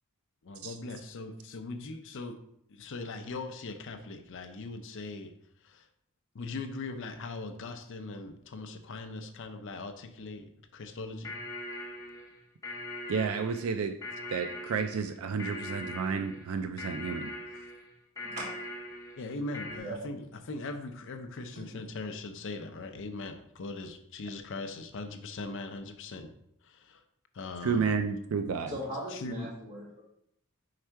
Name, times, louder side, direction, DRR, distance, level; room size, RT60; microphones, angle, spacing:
voice 1, 0.4-2.4 2.7-5.3 5.6-5.9 6.3-10.5 10.7-11.4 19.2-26.3 26.6-27.0 27.3-28.0 29.1-29.5, left 3 dB, 60° left, 8 dB, 0.5 m, -40 dB
sound 1, 11.2-19.8, left 1 dB, 15° left, 0.9 m, -41 dB
voice 2, 13.1-14.0 14.3-17.6 27.6-28.8, right 5 dB, 65° right, 8 dB, 0.4 m, -31 dB
voice 3, 18.2-18.5 19.8-20.0 21.6-21.8 28.7-29.9, right 1 dB, 30° right, -4 dB, 2.0 m, -39 dB
4.8 x 4.3 x 4.5 m, 0.72 s
head